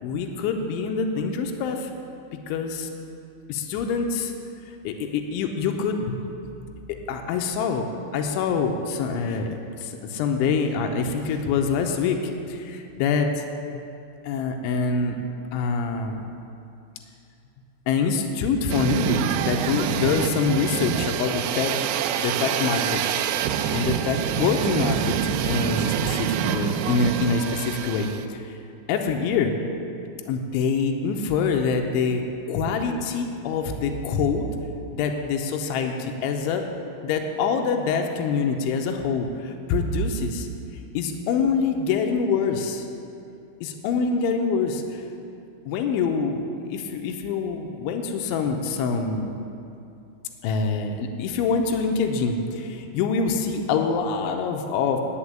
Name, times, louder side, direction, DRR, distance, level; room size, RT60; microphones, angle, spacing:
voice 1, 0.0-1.9 2.5-2.9 3.5-4.3 4.8-6.2 7.1-7.9 8.1-9.5 9.8-12.2 12.5-13.4 14.2-15.2 15.5-16.2 17.9-21.7 22.2-23.0 23.7-25.2 25.4-28.6 28.9-29.6 30.3-34.5 34.9-36.6 37.0-40.5 40.9-42.9 43.6-45.0 45.7-46.4 46.7-49.3 50.4-55.0, left 5 dB, 85° left, 4 dB, 3.1 m, -25 dB
sound 1, 18.7-28.3, right 9 dB, 85° right, 2.5 m, -26 dB
9.7 x 6.9 x 8.7 m, 2.6 s
omnidirectional pair, 5.4 m